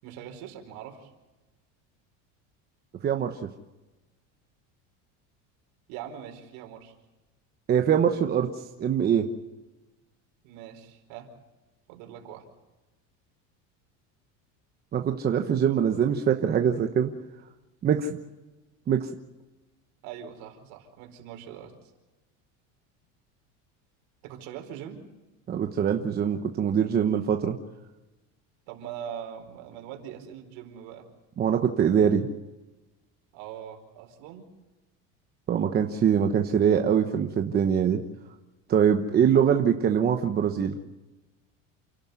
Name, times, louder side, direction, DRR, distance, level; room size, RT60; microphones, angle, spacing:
voice 1, 0.0-1.1 5.9-6.9 10.4-11.3 11.9-12.5 20.0-21.9 24.2-25.0 28.7-31.1 33.3-34.5, right 9 dB, 65° right, 4 dB, 4.7 m, -42 dB
voice 2, 3.0-3.5 7.7-8.5 8.8-9.3 14.9-17.1 17.8-18.2 18.9-19.1 25.5-27.6 31.4-32.3 35.5-38.0 38.7-40.7, right 8 dB, 25° right, 5 dB, 1.1 m, -23 dB
29.0 x 12.0 x 9.6 m, 1.1 s
cardioid pair, 150°, 36 cm